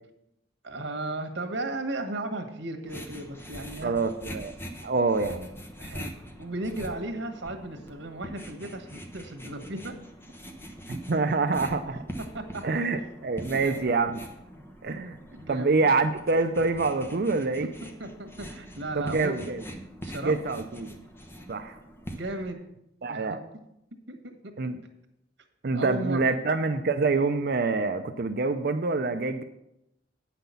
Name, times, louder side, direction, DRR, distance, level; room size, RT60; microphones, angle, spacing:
voice 1, 0.6-3.9 5.8-9.9 12.3-12.6 13.6-13.8 15.3-15.8 17.8-19.3 20.0-20.4 22.1-22.6 23.1-23.4 24.1-24.5 25.7-26.4, right 2 dB, 85° right, 6 dB, 1.5 m, -35 dB
sound 1, 2.8-22.5, equal, 15° left, 1.0 m, -43 dB
voice 2, 3.8-4.5 4.8-5.5 10.9-12.0 12.6-14.2 14.8-15.2 15.5-17.7 19.0-19.6 20.2-21.0 21.5-21.8 23.0-23.4 24.6-24.8 25.6-29.4, right 3 dB, 60° right, 8 dB, 0.5 m, -26 dB
9.0 x 5.9 x 6.9 m, 0.82 s
head